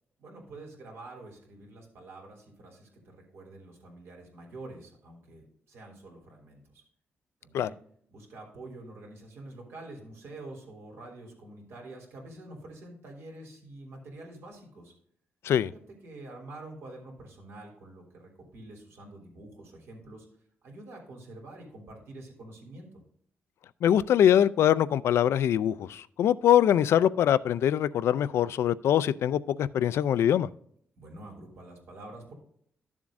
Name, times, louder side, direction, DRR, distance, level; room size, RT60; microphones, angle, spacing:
voice 1, 0.2-6.8 7.4-7.7 8.1-14.9 15.6-20.3 20.6-23.0 31.0-32.3, right 2 dB, 70° right, 3.2 m, -47 dB
voice 2, 23.8-30.5, left 10 dB, 80° left, 0.4 m, -23 dB
12.5 x 7.2 x 2.5 m
wide cardioid pair, 150°, 4 cm